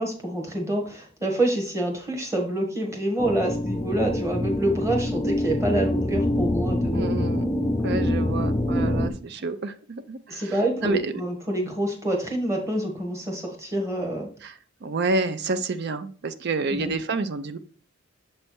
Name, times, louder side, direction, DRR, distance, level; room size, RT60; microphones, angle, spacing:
voice 1, 0.0-7.0 10.3-14.3 16.7-16.9, right 1 dB, 15° right, 1 dB, 1.3 m, -27 dB
sound 1, 3.2-9.1, left 1 dB, 15° left, 0.3 m, -25 dB
voice 2, 6.9-7.5 7.8-10.5 10.8-11.1 14.4-14.5 14.8-17.6, right 3 dB, 55° right, 12 dB, 0.5 m, -29 dB
7.1 x 3.3 x 4.3 m, 0.43 s
head